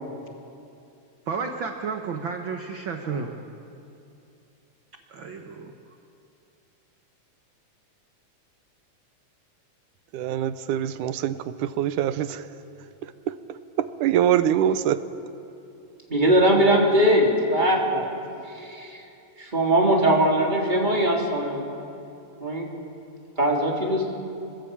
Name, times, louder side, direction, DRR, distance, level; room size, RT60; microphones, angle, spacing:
voice 1, 1.3-3.4 5.1-5.7, right 5 dB, 55° right, 4 dB, 1.5 m, -32 dB
voice 2, 10.1-12.5 13.0-15.0, right 10 dB, 85° right, 12 dB, 2.3 m, -25 dB
voice 3, 16.1-18.1 18.4-19.0 19.4-21.7 22.4-22.7 23.4-24.1, right 1 dB, 15° right, -2 dB, 3.4 m, -21 dB
25.5 x 20.0 x 8.8 m, 2.7 s
omnidirectional pair, 3.6 m